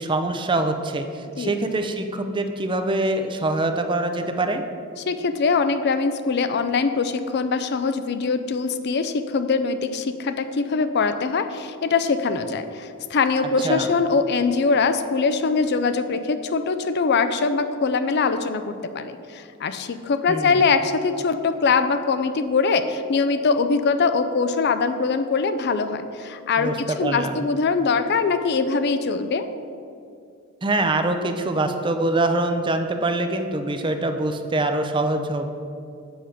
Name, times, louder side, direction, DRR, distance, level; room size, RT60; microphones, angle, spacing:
voice 1, 0.0-4.6 13.6-13.9 20.3-20.6 26.6-27.3 30.6-35.5, right 2 dB, 25° right, 7 dB, 0.5 m, -24 dB
voice 2, 5.1-29.5, left 4 dB, 50° left, 10 dB, 0.4 m, -22 dB
7.8 x 5.0 x 6.5 m, 2.4 s
head